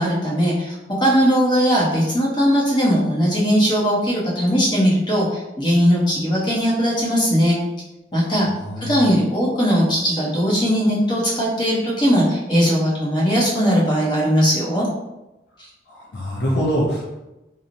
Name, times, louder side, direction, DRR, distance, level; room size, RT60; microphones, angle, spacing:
voice 1, 0.0-7.6 8.1-8.5 8.8-14.9, equal, 25° left, -5 dB, 0.7 m, -19 dB
voice 2, 8.5-9.1 15.9-17.1, equal, 65° left, -5 dB, 0.5 m, -24 dB
2.8 x 2.0 x 2.6 m, 0.98 s
head